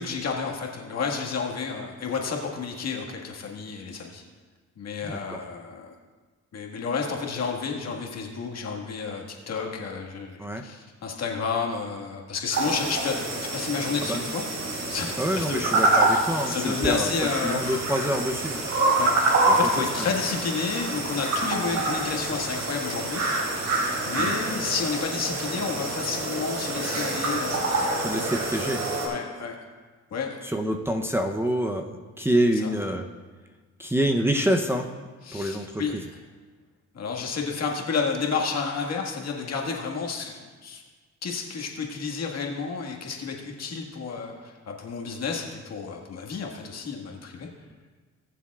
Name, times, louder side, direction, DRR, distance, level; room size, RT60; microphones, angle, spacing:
voice 1, 0.0-4.2 4.8-5.9 6.5-14.4 14.9-15.9 16.5-17.8 19.0-23.2 24.0-27.9 29.0-29.6 30.1-30.4 32.5-32.7 35.2-36.0 36.9-40.8 41.2-47.5, left 5 dB, 60° left, 1 dB, 1.8 m, -31 dB
voice 2, 5.1-5.4 10.4-10.6 14.0-14.2 15.2-17.1 17.4-18.6 24.2-24.3 28.0-28.8 30.4-33.1 33.8-34.9 35.3-35.8, equal, 10° right, 1 dB, 0.7 m, -26 dB
sound 1, 12.5-29.1, right 2 dB, 65° right, 3.2 m, -27 dB
19.5 x 7.2 x 2.4 m, 1.4 s
cardioid pair, 90°, 30 cm